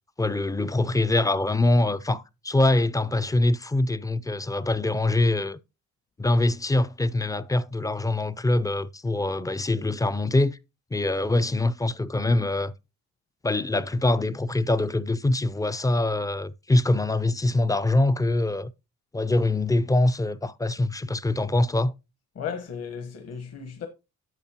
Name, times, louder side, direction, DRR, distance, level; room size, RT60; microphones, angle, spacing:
voice 1, 0.2-5.6 6.2-10.6 10.9-12.7 13.4-18.7 19.1-21.9, left 2 dB, 10° left, 0.4 m, -24 dB
voice 2, 22.3-23.9, left 7 dB, 55° left, 1.2 m, -35 dB
10.5 x 6.6 x 2.8 m
cardioid pair, 90°, 30 cm